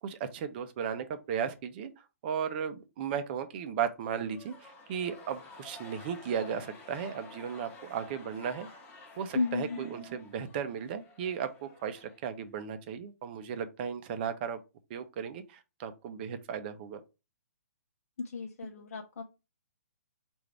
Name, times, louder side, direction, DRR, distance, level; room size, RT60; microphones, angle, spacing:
voice 1, 0.0-8.7 9.2-14.6 14.9-17.0 18.8-18.9, right 7 dB, 40° right, 0.7 m, -36 dB
sound 1, 4.2-12.7, left 3 dB, 20° left, 1.0 m, -51 dB
voice 2, 9.3-9.8 18.3-19.2, left 4 dB, 65° left, 0.7 m, -33 dB
4.8 x 2.6 x 3.3 m
hypercardioid pair, 135°, 8 cm